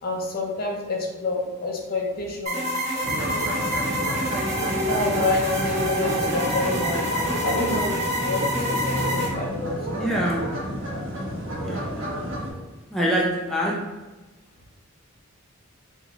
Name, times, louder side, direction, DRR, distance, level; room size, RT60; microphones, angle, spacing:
voice 1, 0.0-2.6 4.8-10.2, left 2 dB, 45° left, -1 dB, 0.6 m, -28 dB
sound 1, 2.5-9.3, equal, 35° right, 1.3 m, -27 dB
sound 2, 3.0-12.5, equal, 60° right, 0.9 m, -30 dB
voice 2, 10.0-10.4 11.6-11.9 12.9-13.7, equal, ahead, -5 dB, 0.5 m, -24 dB
3.6 x 2.6 x 3.0 m, 1.1 s
head